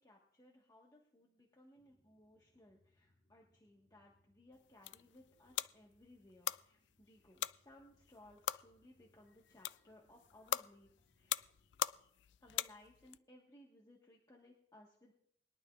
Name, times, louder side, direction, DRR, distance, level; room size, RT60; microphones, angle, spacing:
voice 1, 0.0-10.9 11.2-11.4 12.4-15.1, left 1 dB, 20° left, -2 dB, 1.4 m, -63 dB
sound 1, 1.7-11.9, equal, 40° left, 3.0 m, -77 dB
sound 2, 4.5-13.2, left 12 dB, 75° left, 0.3 m, -43 dB
21.5 x 11.0 x 2.4 m, 0.69 s
head